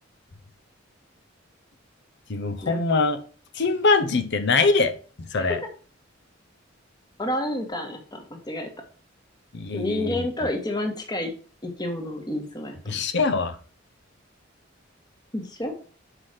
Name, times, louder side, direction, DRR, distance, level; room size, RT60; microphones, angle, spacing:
voice 1, 2.3-3.2 3.5-5.6 9.5-10.3 12.9-13.6, left 3 dB, 60° left, 10 dB, 0.8 m, -23 dB
voice 2, 7.2-8.7 9.7-11.3 11.6-13.0 15.3-15.7, left 1 dB, 20° left, 3 dB, 1.5 m, -30 dB
6.0 x 5.0 x 5.8 m, 0.40 s
head